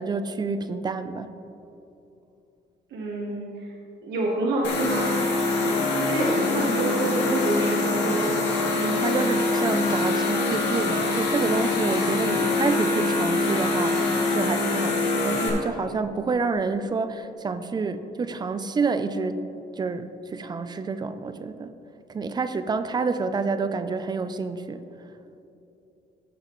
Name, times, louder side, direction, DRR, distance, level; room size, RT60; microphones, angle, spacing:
voice 1, 0.0-1.3 8.8-19.4 19.8-21.7 22.1-24.8, right 4 dB, 25° right, 11 dB, 0.4 m, -28 dB
voice 2, 2.9-3.7 4.0-8.4, right 2 dB, 80° right, -2 dB, 1.1 m, -28 dB
sound 1, 4.6-15.5, left 2 dB, 80° left, 2.0 m, -24 dB
15.0 x 6.9 x 3.0 m, 2.8 s
cardioid pair, 145°, 18 cm